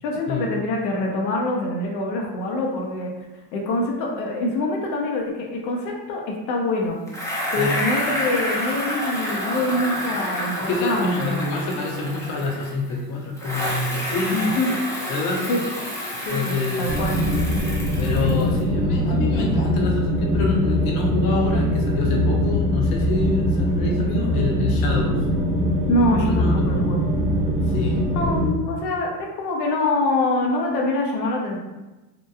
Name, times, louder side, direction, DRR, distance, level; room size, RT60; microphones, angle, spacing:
voice 1, 0.0-3.1 3.5-7.0 7.5-11.4 14.3-14.7 15.5-15.6 16.3-17.1 25.9-27.0 28.1-31.6, left 2 dB, 90° left, 0 dB, 0.7 m, -25 dB
Bicycle, 7.1-12.9 13.4-18.6, equal, 5° left, 0.5 m, -29 dB
voice 2, 10.6-14.5 15.1-15.5 16.3-16.9 18.0-25.2 26.2-27.0 27.7-28.3, left 3 dB, 50° left, 0 dB, 0.7 m, -27 dB
sound 1, 16.9-28.5, equal, 15° right, 0.8 m, -22 dB
2.9 x 2.2 x 2.2 m, 1.1 s
supercardioid pair, 105°, 48 cm